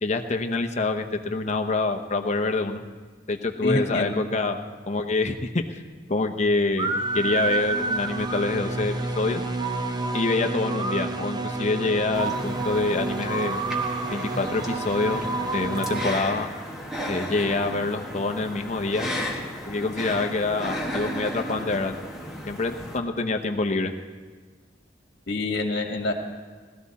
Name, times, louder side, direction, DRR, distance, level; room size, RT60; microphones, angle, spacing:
voice 1, 0.0-2.8 3.3-4.6 4.9-5.8 6.1-9.4 10.1-13.6 14.1-15.2 15.5-16.5 17.1-19.1 19.7-21.9 22.5-23.9, left 3 dB, 35° left, 5 dB, 0.8 m, -26 dB
voice 2, 3.6-4.2 25.3-26.1, left 2 dB, 55° left, 1 dB, 1.8 m, -26 dB
sound 1, 6.8-16.2, right 3 dB, 20° right, 0.6 m, -29 dB
sound 2, 12.1-23.0, equal, ahead, 1.5 m, -34 dB
19.0 x 13.0 x 4.2 m, 1.4 s
head